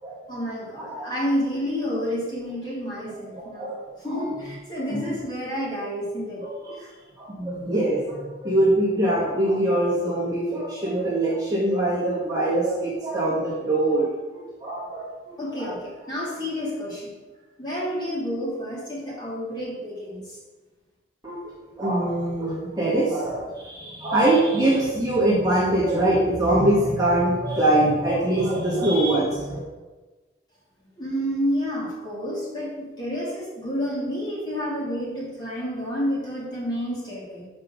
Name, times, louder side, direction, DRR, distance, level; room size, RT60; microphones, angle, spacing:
voice 1, 0.3-6.4 6.8-6.9 15.4-17.2 17.6-20.4 31.0-37.5, equal, 25° left, -7 dB, 2.9 m, -30 dB
voice 2, 3.1-3.8 4.1-4.2 4.9-5.1 6.4-6.7 7.2-15.7 21.2-29.6, right 1 dB, 20° right, -6 dB, 1.6 m, -23 dB
7.1 x 5.2 x 6.4 m, 1.3 s
head